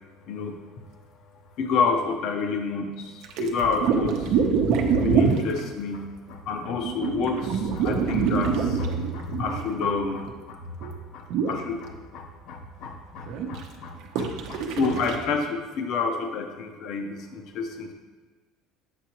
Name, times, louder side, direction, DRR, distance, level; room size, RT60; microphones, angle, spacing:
voice 1, 1.6-2.9 3.4-4.1 5.0-6.0 6.3-17.9, left 4 dB, 45° left, 4 dB, 0.7 m, -29 dB
sound 1, 3.2-5.6 6.8-10.4 10.8-10.9 11.3-11.6 13.3-13.6 14.2-15.2, right 6 dB, 55° right, 0.7 m, -25 dB
8.1 x 5.9 x 3.0 m, 1.3 s
cardioid pair, 175°, 0 cm